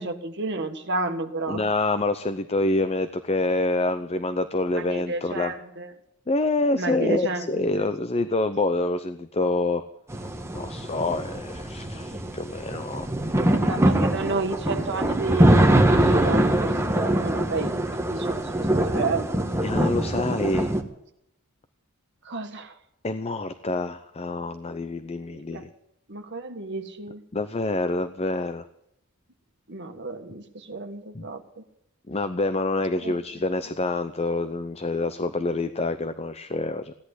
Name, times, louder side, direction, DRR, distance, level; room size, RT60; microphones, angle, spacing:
voice 1, 0.0-1.6 4.7-5.9 6.8-7.9 13.4-19.7 20.2-20.3 22.2-22.8 25.3-25.6 26.1-27.2 29.7-31.6 33.0-33.2, right 3 dB, 55° right, 5 dB, 1.7 m, -32 dB
voice 2, 1.5-5.5 6.3-9.8 10.5-13.4 19.6-20.7 23.0-25.7 27.3-28.6 31.1-31.3 32.1-36.9, left 2 dB, 30° left, 10 dB, 0.6 m, -27 dB
sound 1, 10.1-20.8, right 1 dB, 10° right, 1.4 m, -23 dB
16.5 x 10.5 x 8.2 m, 0.77 s
head